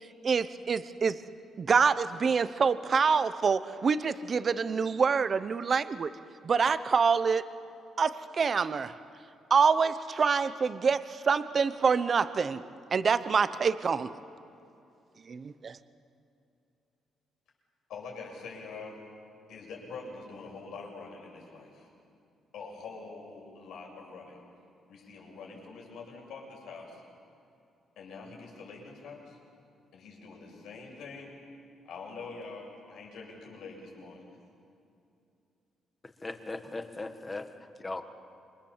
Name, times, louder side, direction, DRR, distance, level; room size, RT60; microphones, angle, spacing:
voice 1, 0.2-1.2 1.6-6.1 6.4-7.4 8.0-8.9 9.5-12.6 12.9-14.1 15.3-15.8, right 5 dB, 35° right, 13 dB, 0.8 m, -26 dB
voice 2, 17.9-19.0 19.5-21.9 22.5-24.4 24.9-27.0 28.0-29.4 29.9-31.3 31.8-34.4, left 4 dB, 80° left, -1 dB, 7.3 m, -45 dB
voice 3, 36.2-37.5 37.8-38.0, left 2 dB, 15° left, 7 dB, 1.4 m, -37 dB
28.0 x 25.5 x 7.4 m, 2.6 s
cardioid pair, 150°, 0 cm